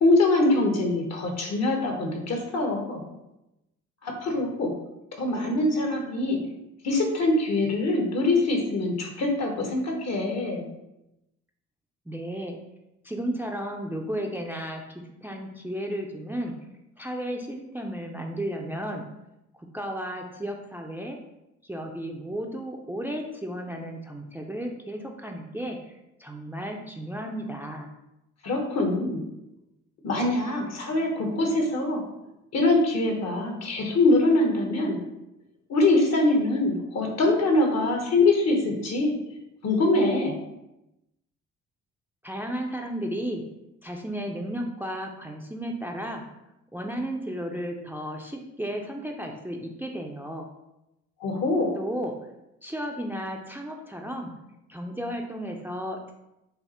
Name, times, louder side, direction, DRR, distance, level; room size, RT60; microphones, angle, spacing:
voice 1, 0.0-3.0 4.0-4.7 5.2-6.4 6.8-10.6 28.4-29.2 30.0-32.0 32.5-35.0 35.7-39.1 39.6-40.3 51.2-51.7, left 2 dB, 60° left, 2 dB, 1.2 m, -23 dB
voice 2, 12.1-12.6 13.0-16.5 17.0-19.0 19.6-21.2 21.6-25.9 26.2-27.9 42.2-43.4 43.8-46.2 46.7-50.5 51.7-52.1 52.6-54.3 54.7-56.1, equal, 5° right, 2 dB, 0.5 m, -33 dB
5.6 x 2.0 x 4.3 m, 0.91 s
cardioid pair, 90°, 30 cm